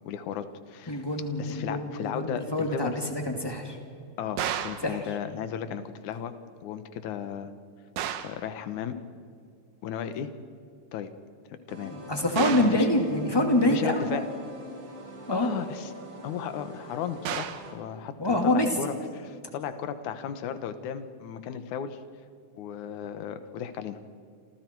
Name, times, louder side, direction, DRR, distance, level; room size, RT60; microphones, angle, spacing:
voice 1, 0.1-1.1 1.4-3.0 4.2-6.3 6.6-7.5 8.2-9.0 9.8-10.3 10.9-11.1 11.7-11.9 12.4-12.9 13.7-14.3 15.3-15.9 16.2-22.0 22.6-24.0, left 8 dB, 70° left, 10 dB, 2.4 m, -35 dB
voice 2, 0.9-3.8 4.8-5.0 11.9-14.2 15.3-15.5 18.2-18.7, left 1 dB, 10° left, 2 dB, 2.3 m, -26 dB
sound 1, 4.4-4.9 8.0-8.4 12.4-12.8 17.3-17.7, right 9 dB, 70° right, 2.3 m, -32 dB
sound 2, 11.7-17.7, equal, 45° right, 5.5 m, -45 dB
28.0 x 28.0 x 4.7 m, 2.4 s
omnidirectional pair, 3.8 m